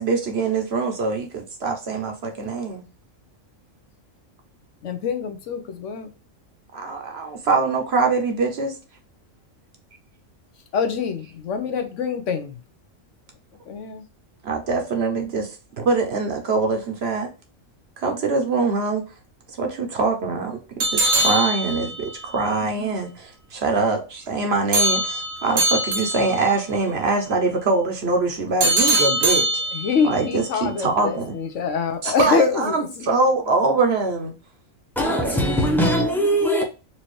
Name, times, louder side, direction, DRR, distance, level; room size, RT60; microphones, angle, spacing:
voice 1, 0.0-2.8 6.7-8.8 14.4-17.3 18.0-19.0 19.5-20.6 20.9-29.6 30.0-31.3 32.0-34.3 35.0-35.4, right 3 dB, 55° right, 0.9 m, -23 dB
voice 2, 4.8-6.1 10.7-12.6 13.7-14.0 29.7-33.1, left 5 dB, 70° left, 1.0 m, -25 dB
sound 1, 20.8-22.2 24.7-26.5 28.6-30.1, right 1 dB, 75° right, 1.3 m, -22 dB
voice 3, 35.0-36.6, equal, ahead, 0.8 m, -20 dB
4.4 x 2.7 x 3.1 m
omnidirectional pair, 1.4 m